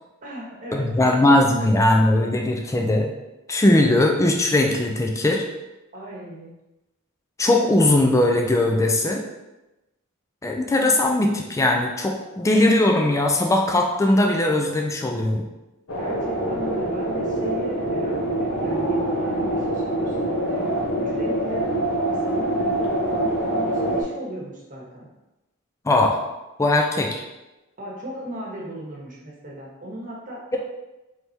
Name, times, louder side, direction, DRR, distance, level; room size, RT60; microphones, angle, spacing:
voice 1, 0.2-0.9 5.9-6.5 16.0-21.8 22.2-25.1 27.8-30.6, right 1 dB, 40° right, -3 dB, 1.1 m, -36 dB
voice 2, 0.7-3.1 3.5-5.4 7.4-9.2 10.4-15.4 25.9-26.2 26.6-27.2, left 1 dB, 15° left, 1 dB, 0.4 m, -19 dB
sound 1, 15.9-24.0, right 1 dB, 90° left, 1.0 m, -25 dB
4.6 x 3.4 x 2.8 m, 1.0 s
head